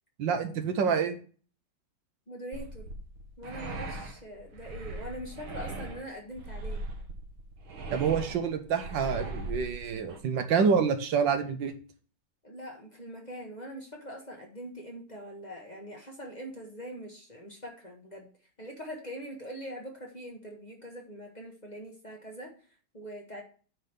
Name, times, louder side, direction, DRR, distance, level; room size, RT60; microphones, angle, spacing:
voice 1, 0.2-1.2 7.9-11.7, right 6 dB, 70° right, 8 dB, 1.6 m, -27 dB
voice 2, 2.3-2.9 3.4-6.8 12.4-18.3 18.6-22.5 22.9-23.4, equal, 25° left, 0 dB, 1.5 m, -43 dB
sound 1, 2.5-10.2, right 2 dB, 90° right, 2.0 m, -39 dB
8.9 x 4.0 x 6.6 m, 0.40 s
omnidirectional pair, 2.1 m